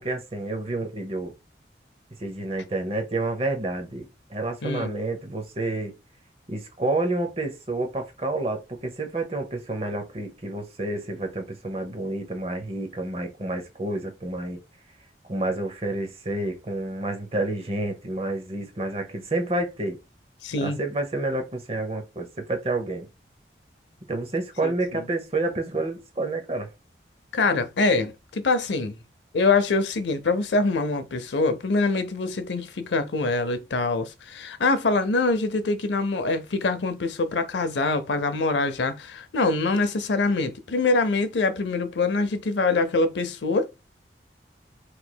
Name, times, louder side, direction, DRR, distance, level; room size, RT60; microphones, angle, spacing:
voice 1, 0.0-1.3 2.2-6.0 6.5-14.6 15.3-20.0 20.6-23.1 24.1-26.7, right 2 dB, 35° right, 0.8 m, -29 dB
voice 2, 20.4-20.8 24.6-25.0 27.3-29.0 29.3-43.7, left 3 dB, 85° left, 0.6 m, -24 dB
4.5 x 3.1 x 2.2 m
head